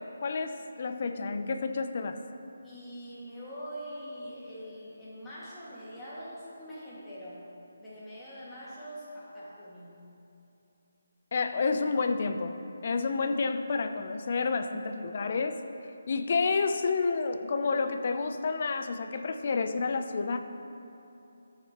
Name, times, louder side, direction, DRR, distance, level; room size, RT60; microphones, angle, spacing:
voice 1, 0.0-2.2 11.3-12.6 12.8-15.6 16.1-20.4, left 4 dB, 45° left, 7 dB, 0.5 m, -29 dB
voice 2, 2.6-7.5 7.8-10.0, equal, 5° left, -11 dB, 2.1 m, -43 dB
14.0 x 6.6 x 3.0 m, 2.8 s
figure-of-eight pair, 155°, 0 cm